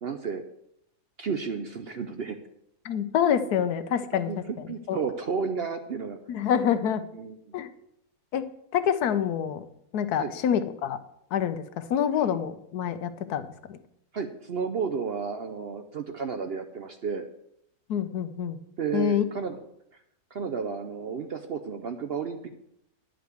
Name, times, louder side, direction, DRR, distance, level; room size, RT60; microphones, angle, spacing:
voice 1, 0.0-0.4 1.2-2.4 4.3-6.2 7.1-7.3 10.2-10.3 14.1-17.3 18.8-19.6 20.3-22.6, right 5 dB, 55° right, 7 dB, 0.7 m, -32 dB
voice 2, 2.8-4.3 4.9-5.0 6.3-7.0 7.5-7.7 8.3-8.4 8.7-9.6 9.9-11.0 11.3-13.8 17.9-18.6 18.9-19.2, left 9 dB, 80° left, 11 dB, 1.3 m, -26 dB
10.0 x 5.2 x 7.7 m, 0.76 s
omnidirectional pair, 1.6 m